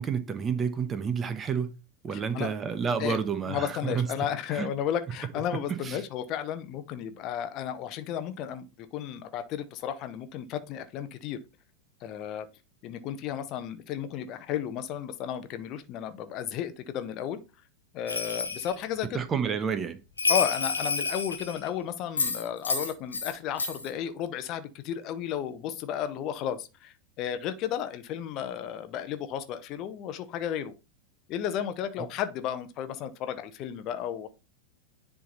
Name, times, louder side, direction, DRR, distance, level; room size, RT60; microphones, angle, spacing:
voice 1, 0.0-1.7 2.0-4.1 4.5-4.7 5.8-6.0 19.1-20.0, right 6 dB, 20° right, 1.1 m, -29 dB
voice 2, 2.1-2.5 3.0-3.2 3.5-11.4 12.0-12.5 12.8-17.4 17.9-19.2 20.3-30.7 31.3-34.3, left 9 dB, 40° left, 0.8 m, -33 dB
Bell, 18.1-18.8 20.2-21.7 22.2-23.3 23.6-23.9, left 4 dB, 80° left, 1.6 m, -29 dB
10.5 x 3.7 x 4.1 m
figure-of-eight pair, 90°, 0 cm